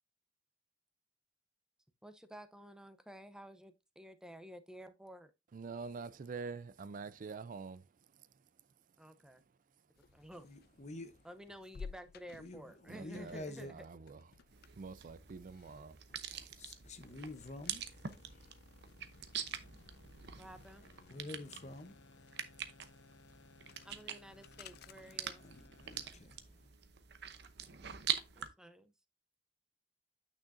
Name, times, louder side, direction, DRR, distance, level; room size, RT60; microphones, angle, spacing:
voice 1, 2.0-5.3 9.0-9.4 10.1-10.5 11.2-13.8 20.4-20.9 23.8-25.5 28.4-28.9, equal, 5° right, 0.7 m, -52 dB
voice 2, 5.5-8.7 12.9-16.7, right 4 dB, 50° right, 0.4 m, -47 dB
sound 1, 9.9-26.1, left 5 dB, 60° left, 0.4 m, -58 dB
voice 3, 10.4-11.2 12.4-13.7 16.1-18.5 21.1-22.3 25.4-26.7, left 2 dB, 40° left, 1.0 m, -49 dB
sound 2, 14.5-28.5, right 9 dB, 65° right, 0.9 m, -44 dB
sound 3, 17.0-26.1, left 3 dB, 80° left, 0.8 m, -61 dB
8.9 x 6.2 x 2.7 m
head